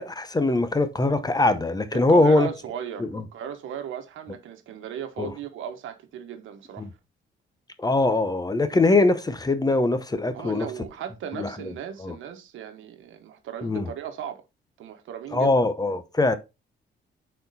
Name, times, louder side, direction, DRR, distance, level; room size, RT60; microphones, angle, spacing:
voice 1, 0.0-2.5 3.0-3.2 5.2-5.3 6.8-6.9 7.8-10.7 11.3-11.5 12.0-12.1 13.6-13.9 15.3-16.3, left 2 dB, 20° left, 0.9 m, -22 dB
voice 2, 1.9-6.9 10.3-14.4 14.8-15.6, right 9 dB, 80° right, 1.2 m, -36 dB
6.4 x 4.4 x 4.1 m
cardioid pair, 90°, 20 cm